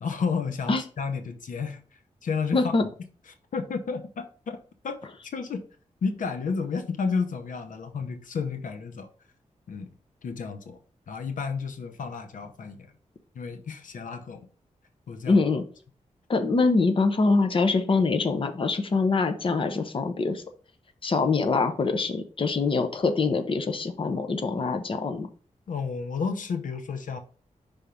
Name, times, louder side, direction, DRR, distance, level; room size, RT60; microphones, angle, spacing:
voice 1, 0.0-2.7 3.3-4.6 4.8-5.7 6.0-9.1 9.7-9.9 10.2-10.8 11.1-12.9 13.3-14.5 15.1-15.4 25.7-27.2, left 5 dB, 85° left, 0.7 m, -32 dB
voice 2, 2.5-2.8 15.3-15.6 16.3-20.4 21.0-25.3, left 3 dB, 40° left, 0.8 m, -24 dB
5.6 x 3.5 x 5.1 m
wide cardioid pair, 120°, 13 cm